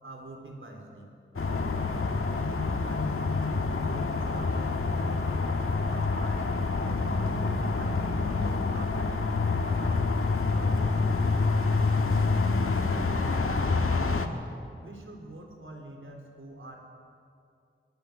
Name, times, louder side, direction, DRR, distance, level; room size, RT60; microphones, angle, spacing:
voice 1, 0.0-2.0 2.3-3.2 3.7-5.2 5.7-6.5 6.8-8.0 8.3-9.2 9.5-10.0 10.4-12.3 12.6-14.5 14.8-16.9, right 2 dB, 75° right, 2 dB, 4.4 m, -46 dB
sound 1, 1.4-14.3, left 3 dB, 85° left, 1.7 m, -27 dB
23.5 x 22.0 x 8.4 m, 2.4 s
wide cardioid pair, 75°, 21 cm